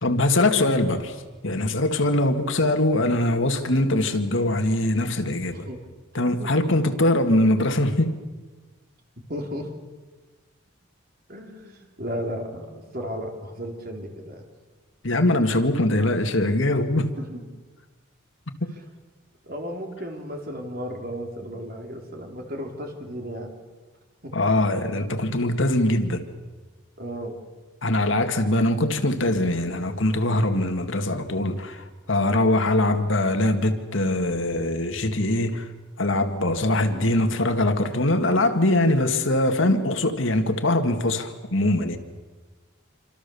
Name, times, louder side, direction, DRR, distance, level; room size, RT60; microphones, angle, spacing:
voice 1, 0.0-1.2 1.4-5.7 6.1-8.2 15.0-17.2 18.6-18.7 24.3-26.2 27.8-35.7 36.0-42.0, left 1 dB, 70° left, 2.1 m, -22 dB
voice 2, 9.3-9.7 11.3-14.5 15.5-15.6 17.2-17.4 19.4-23.5 24.2-24.3 27.0-27.4 36.9-37.3, equal, 45° right, 3.7 m, -34 dB
27.0 x 26.0 x 7.1 m
head